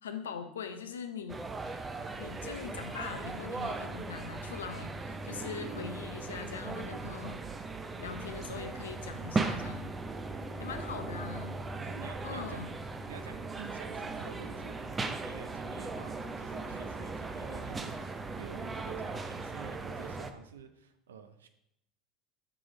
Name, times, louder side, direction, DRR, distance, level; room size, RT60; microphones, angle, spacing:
voice 1, 0.0-1.4 2.2-7.5 8.0-9.9 10.6-11.6 12.2-12.7, left 6 dB, 85° left, 8 dB, 0.5 m, -41 dB
sound 1, 1.3-20.3, right 3 dB, 25° right, 0.5 m, -38 dB
voice 2, 10.3-11.1 11.8-12.8 13.1-14.8 15.0-21.5, right 6 dB, 80° right, 9 dB, 0.5 m, -49 dB
6.1 x 3.1 x 4.9 m, 0.79 s
hypercardioid pair, 75°, 0 cm